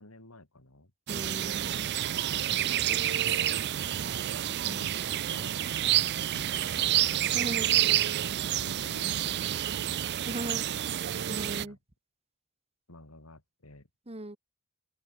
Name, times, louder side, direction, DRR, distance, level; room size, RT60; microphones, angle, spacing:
voice 1, 0.0-0.9 2.5-4.1 4.5-8.0 8.6-10.0 11.3-11.8 12.9-13.9, left 2 dB, 80° left, 4.1 m, -51 dB
voice 2, 1.1-1.9 7.3-7.7 10.3-10.7 11.3-11.8 14.1-14.4, right 1 dB, 30° right, 2.1 m, -37 dB
sound 1, 1.1-11.6, right 12 dB, 50° right, 0.4 m, -29 dB
open air
head